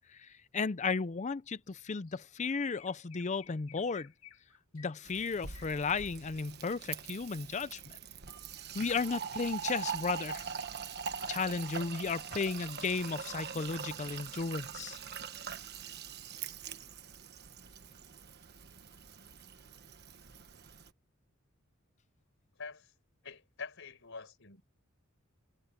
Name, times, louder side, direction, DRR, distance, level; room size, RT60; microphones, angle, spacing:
voice 1, 0.1-4.1 4.7-8.0 8.7-10.5 11.3-15.0, left 4 dB, 35° left, 0.5 m, -34 dB
Chirp tweet, 1.7-1.8 2.1-6.6, left 9 dB, 85° left, 2.2 m, -58 dB
Fill (with liquid), 5.1-20.9, right 7 dB, 50° right, 1.2 m, -43 dB
voice 2, 22.6-22.9 23.2-24.6, left 4 dB, 65° left, 4.9 m, -45 dB
head